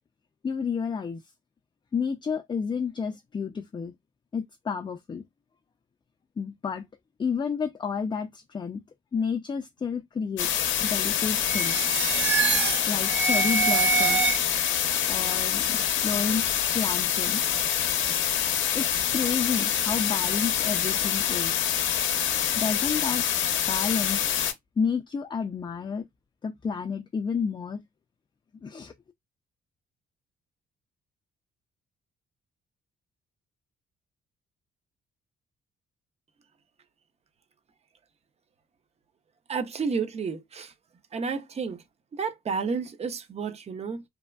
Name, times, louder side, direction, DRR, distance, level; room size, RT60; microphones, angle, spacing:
voice 1, 0.4-1.2 1.9-3.9 4.3-5.2 6.4-6.9 7.2-8.8 9.1-10.5 10.8-11.8 12.9-14.4 15.1-16.4 16.7-17.4 18.7-21.6 22.5-23.2 23.7-24.2 24.8-26.1 26.4-27.8 28.6-28.9, left 6 dB, 25° left, 0.4 m, -30 dB
sound 1, 10.4-24.5, left 9 dB, 75° left, 0.6 m, -26 dB
sound 2, 11.4-14.8, right 4 dB, 65° right, 0.8 m, -26 dB
voice 2, 39.5-40.7 41.1-41.8 42.2-44.0, right 5 dB, 35° right, 0.5 m, -31 dB
3.4 x 2.1 x 2.2 m
cardioid pair, 90°, 20 cm